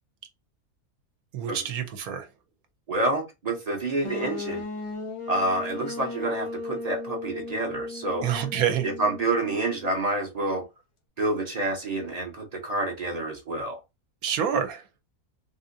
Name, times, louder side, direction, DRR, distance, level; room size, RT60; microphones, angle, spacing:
voice 1, 1.3-2.3 8.2-8.9 14.2-14.8, right 8 dB, 80° right, 1.1 m, -27 dB
voice 2, 2.9-4.6 5.3-8.3 8.8-10.7 11.2-13.8, right 2 dB, 40° right, 0.6 m, -28 dB
sound 1, 4.0-9.9, left 3 dB, 45° left, 0.3 m, -36 dB
3.6 x 2.7 x 2.5 m
omnidirectional pair, 1.5 m